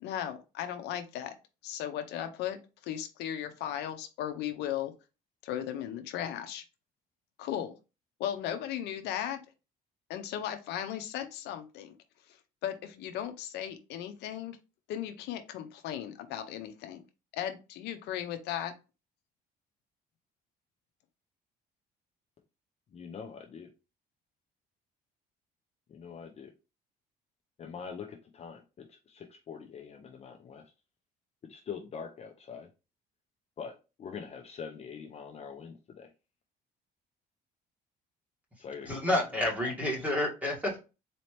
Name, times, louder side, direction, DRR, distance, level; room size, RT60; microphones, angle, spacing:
voice 1, 0.0-1.3 1.6-4.9 5.4-6.6 7.4-7.7 8.2-9.4 10.1-11.9 12.6-14.6 14.9-17.0 17.3-18.7, left 10 dB, 80° left, 0.6 m, -36 dB
voice 2, 22.9-23.7 25.9-26.5 27.6-30.7 31.4-32.7 33.6-36.1 38.6-39.2, left 6 dB, 40° left, 0.6 m, -44 dB
voice 3, 38.9-40.8, left 1 dB, 10° right, 1.9 m, -29 dB
4.2 x 2.8 x 3.2 m
cardioid pair, 110°, 17 cm